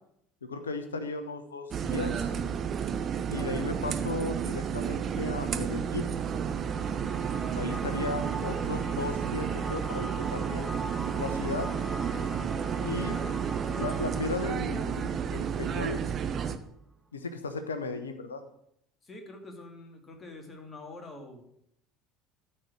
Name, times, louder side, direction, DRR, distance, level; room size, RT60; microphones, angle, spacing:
voice 1, 0.4-2.3 3.3-6.1 7.5-10.7 11.2-11.7 12.8-13.2 13.8-16.0 17.1-18.4, left 3 dB, 80° left, 9 dB, 0.9 m, -35 dB
sound 1, 1.7-16.6, right 7 dB, 35° right, 0.7 m, -32 dB
sound 2, 6.6-16.3, right 2 dB, 20° right, 1.1 m, -41 dB
voice 2, 19.0-21.4, left 2 dB, 25° left, 3 dB, 2.4 m, -45 dB
13.0 x 4.4 x 6.2 m, 0.74 s
figure-of-eight pair, 65°, 0 cm